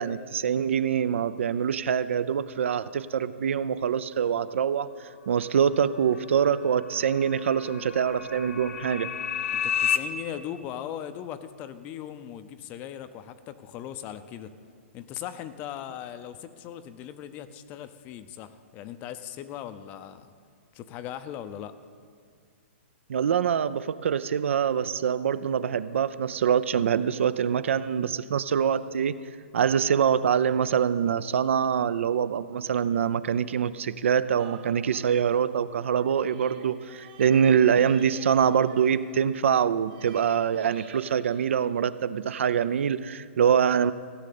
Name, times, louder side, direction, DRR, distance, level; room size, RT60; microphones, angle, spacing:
voice 1, 0.0-9.1 23.1-29.2 29.5-43.9, right 8 dB, 70° right, 15 dB, 0.5 m, -24 dB
sound 1, 5.7-10.0, left 9 dB, 80° left, 0.9 m, -32 dB
voice 2, 9.5-14.5 14.9-20.3 20.7-21.7, left 10 dB, 25° left, 12 dB, 0.5 m, -39 dB
sound 2, 34.4-42.2 42.7-42.8, right 6 dB, 40° right, 1.5 m, -51 dB
15.5 x 6.4 x 8.5 m, 2.1 s
hypercardioid pair, 160°, 7 cm